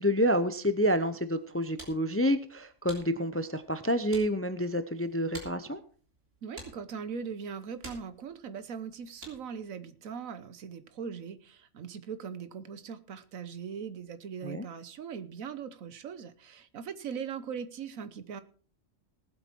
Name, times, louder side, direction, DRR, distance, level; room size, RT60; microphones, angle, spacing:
voice 1, 0.0-5.8 14.4-14.6, equal, 15° left, 11 dB, 0.5 m, -28 dB
sound 1, 1.4-9.6, right 1 dB, 65° right, 3.7 m, -52 dB
voice 2, 6.4-18.4, right 6 dB, 80° right, 13 dB, 1.4 m, -40 dB
18.5 x 8.0 x 4.5 m, 0.41 s
omnidirectional pair, 1.4 m